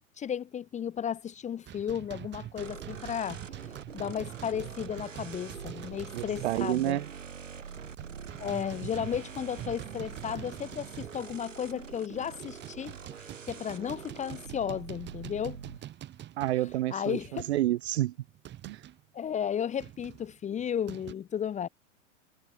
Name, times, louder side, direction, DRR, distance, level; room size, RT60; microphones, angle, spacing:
voice 1, 0.2-3.4 3.9-7.0 8.4-15.6 16.9-17.5 19.1-21.7, left 8 dB, 20° left, 1.4 m, -34 dB
sound 1, 1.7-6.9 7.2-7.3 7.7-11.7 12.2-19.0 19.8-21.1, right 12 dB, 30° right, 5.6 m, -45 dB
sound 2, 2.6-15.8, right 6 dB, 80° right, 5.8 m, -45 dB
voice 2, 6.1-7.1 16.4-18.1 18.7-18.8, right 15 dB, 60° right, 3.5 m, -29 dB
hypercardioid pair, 110°, 37 cm